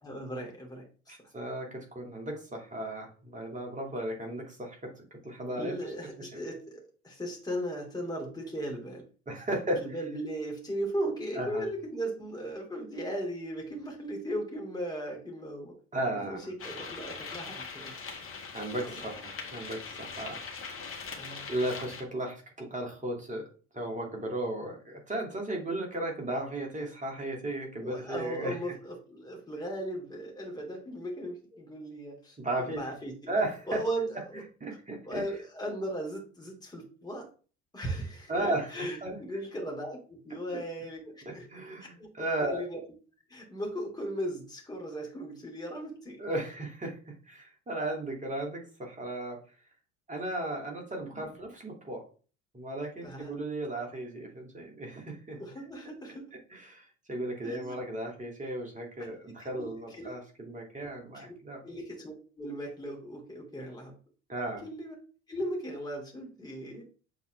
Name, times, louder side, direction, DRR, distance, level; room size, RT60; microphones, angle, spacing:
voice 1, 0.0-1.2 5.5-9.0 9.5-15.7 16.2-17.9 18.8-19.0 21.2-21.5 27.8-32.4 32.8-33.3 33.7-34.4 35.0-37.3 37.7-41.5 42.0-42.1 42.4-42.8 43.3-46.2 51.1-51.3 53.0-53.3 55.3-56.3 57.4-57.8 59.0-59.1 59.4-60.2 61.1-61.3 61.6-63.9 64.6-64.9 65.3-66.8, right 1 dB, 10° left, 0 dB, 2.7 m, -37 dB
voice 2, 1.1-4.8 5.2-5.9 6.2-6.3 9.3-9.8 11.3-11.7 15.9-16.5 18.5-20.4 20.8-21.0 21.5-23.4 23.7-28.5 32.4-32.8 33.3-33.8 34.6-35.2 38.3-39.2 41.5-42.6 46.2-49.4 50.1-52.0 52.5-55.4 56.5-61.6 64.3-64.6, right 1 dB, 20° right, 1 dB, 2.4 m, -35 dB
sound 1, 16.6-22.0, left 5 dB, 35° left, 1.9 m, -41 dB
7.2 x 4.0 x 3.4 m, 0.38 s
figure-of-eight pair, 60°, 37 cm